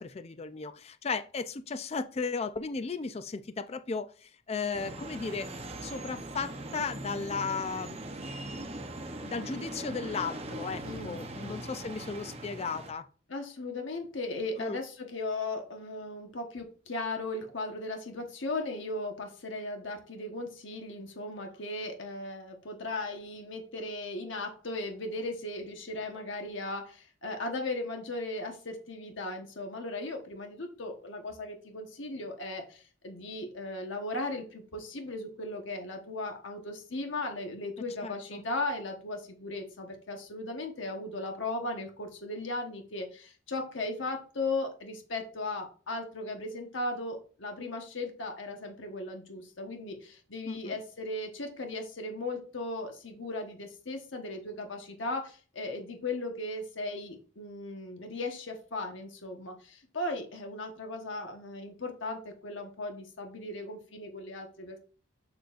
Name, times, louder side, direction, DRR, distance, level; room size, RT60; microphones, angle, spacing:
voice 1, 0.0-5.5 5.8-8.0 8.4-8.9 9.2-13.1 14.6-14.8 38.0-38.4 50.5-50.7, left 4 dB, 30° left, 11 dB, 0.4 m, -35 dB
sound 1, 4.7-12.9, right 1 dB, 30° right, 0.8 m, -40 dB
voice 2, 10.8-11.6 13.3-64.8, left 2 dB, 65° left, 3 dB, 1.2 m, -37 dB
7.6 x 6.9 x 2.5 m, 0.39 s
head